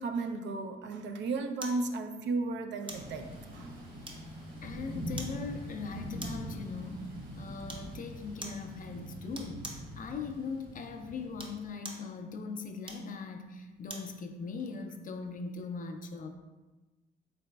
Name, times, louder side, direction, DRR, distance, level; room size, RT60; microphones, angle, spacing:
voice 1, 0.0-3.7, right 3 dB, 65° right, 6 dB, 0.4 m, -34 dB
sound 1, 1.6-1.9 2.9-3.1 4.0-4.5 5.2-5.4 6.2-6.5 7.7-7.9 8.4-8.7 9.3-9.9 11.2-12.1 12.8-14.1 14.6-14.7, right 2 dB, 25° right, 0.6 m, -44 dB
Thunder / Rain, 2.9-11.7, equal, 45° right, 1.2 m, -43 dB
voice 2, 4.6-9.7 10.0-16.3, left 4 dB, 45° left, 6 dB, 0.4 m, -40 dB
4.0 x 3.9 x 2.2 m, 1.2 s
cardioid pair, 90°, 20 cm